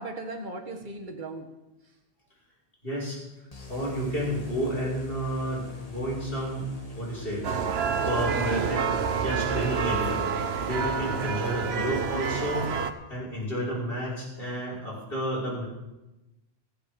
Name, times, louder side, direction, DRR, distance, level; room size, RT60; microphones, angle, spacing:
voice 1, 0.0-1.5 8.3-8.9, right 3 dB, 50° right, 2 dB, 1.8 m, -37 dB
voice 2, 2.8-3.2 3.7-6.7 7.0-7.4 8.0-8.8 9.2-12.7 13.1-15.6, equal, 60° left, -6 dB, 5.9 m, -31 dB
sound 1, 3.5-11.1, left 2 dB, 35° left, 1.8 m, -43 dB
sound 2, 7.4-12.9, right 6 dB, 75° right, 1.1 m, -28 dB
23.5 x 8.3 x 5.2 m, 0.99 s
omnidirectional pair, 1.1 m